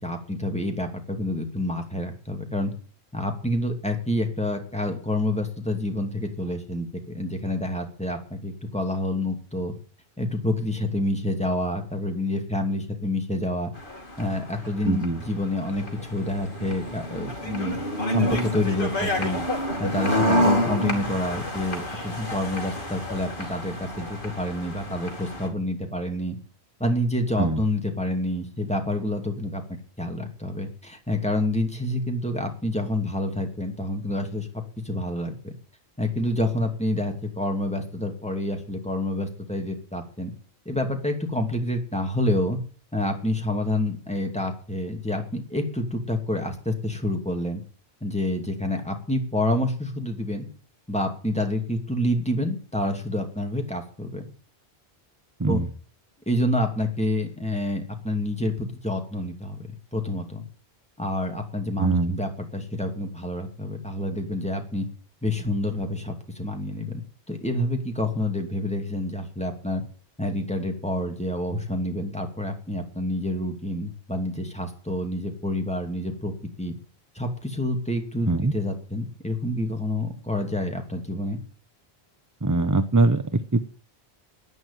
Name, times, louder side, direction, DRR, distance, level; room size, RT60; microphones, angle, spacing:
voice 1, 0.0-2.7 3.1-9.7 10.2-13.7 14.2-17.8 18.1-19.4 19.8-26.4 26.8-29.6 30.0-34.5 34.8-35.5 36.0-40.3 40.6-42.6 42.9-47.6 48.0-50.5 50.9-54.3 55.5-55.6 56.3-60.4 61.0-64.9 65.2-67.0 67.3-69.8 70.2-76.7 77.1-81.4, left 1 dB, 5° left, 3 dB, 2.6 m, -28 dB
sound 1, 13.7-25.5, left 1 dB, 55° left, 2.8 m, -29 dB
voice 2, 14.8-15.2 27.4-27.6 55.4-55.7 61.8-62.2 78.3-78.5 82.4-83.7, right 3 dB, 20° right, 11 dB, 0.7 m, -22 dB
11.0 x 9.8 x 9.1 m, 0.42 s
omnidirectional pair, 1.1 m